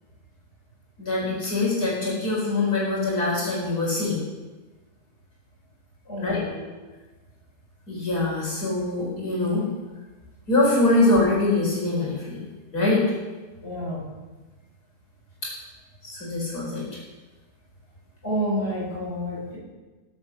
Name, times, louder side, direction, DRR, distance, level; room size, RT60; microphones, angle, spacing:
voice 1, 1.0-4.2 6.2-6.4 7.9-9.7 10.5-12.4 12.7-13.0 15.4-15.5 16.0-16.8, left 2 dB, 70° left, -5 dB, 5.0 m, -23 dB
voice 2, 6.0-6.6 13.6-14.1 18.2-19.6, equal, 40° left, -6 dB, 6.7 m, -29 dB
19.5 x 7.7 x 7.1 m, 1.2 s
omnidirectional pair, 1.7 m